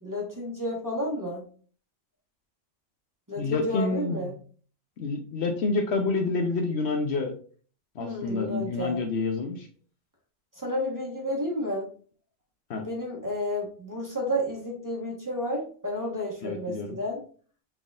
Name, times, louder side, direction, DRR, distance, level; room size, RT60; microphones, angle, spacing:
voice 1, 0.0-1.4 3.3-4.3 8.0-9.0 10.6-11.9 12.8-17.2, equal, 15° right, -2 dB, 1.3 m, -31 dB
voice 2, 3.4-4.4 5.0-7.3 8.0-9.7 12.7-12.8 16.4-17.0, left 3 dB, 65° left, 4 dB, 0.9 m, -28 dB
5.9 x 3.6 x 2.5 m, 0.43 s
omnidirectional pair, 1.3 m